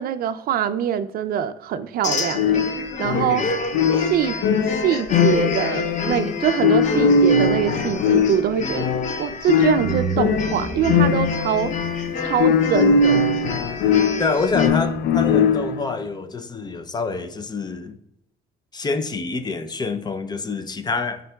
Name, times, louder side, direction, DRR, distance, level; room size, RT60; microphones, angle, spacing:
voice 1, 0.0-2.7 3.0-3.4 3.9-4.4 4.7-8.9 9.2-11.7 12.2-13.2, right 9 dB, 60° right, 11 dB, 0.4 m, -23 dB
sound 1, 2.0-14.7, left 3 dB, 45° left, 0.8 m, -29 dB
sound 2, 2.3-15.9, left 5 dB, 75° left, 0.4 m, -21 dB
voice 2, 3.2-3.5 14.2-18.0 18.7-21.2, left 4 dB, 25° left, 9 dB, 0.5 m, -27 dB
sound 3, 7.7-9.4 9.8-15.0, right 5 dB, 45° right, 1.1 m, -34 dB
11.0 x 3.8 x 2.3 m, 0.83 s
cardioid pair, 110°, 17 cm